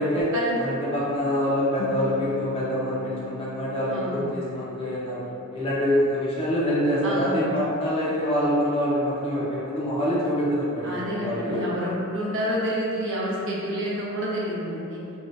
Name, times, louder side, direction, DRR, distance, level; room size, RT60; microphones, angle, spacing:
voice 1, 0.6-5.2 5.5-11.6, equal, 25° left, -8 dB, 0.6 m, -25 dB
sound 1, 1.8-6.4, left 8 dB, 65° left, 0.3 m, -41 dB
voice 2, 3.9-4.2 7.0-7.5 10.8-15.0, equal, 60° right, -6 dB, 0.6 m, -28 dB
2.6 x 2.4 x 3.2 m, 2.6 s
head